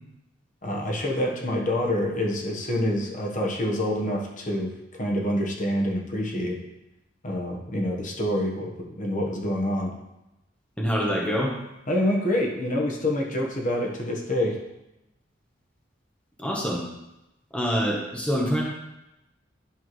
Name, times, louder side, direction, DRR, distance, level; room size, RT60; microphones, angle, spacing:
voice 1, 0.6-4.7 5.0-6.6 7.2-9.9 11.9-14.6, left 1 dB, 45° left, -1 dB, 1.2 m, -26 dB
voice 2, 10.8-11.5 16.4-16.8 17.5-18.6, equal, 5° left, -2 dB, 1.0 m, -25 dB
10.5 x 5.7 x 3.2 m, 0.92 s
head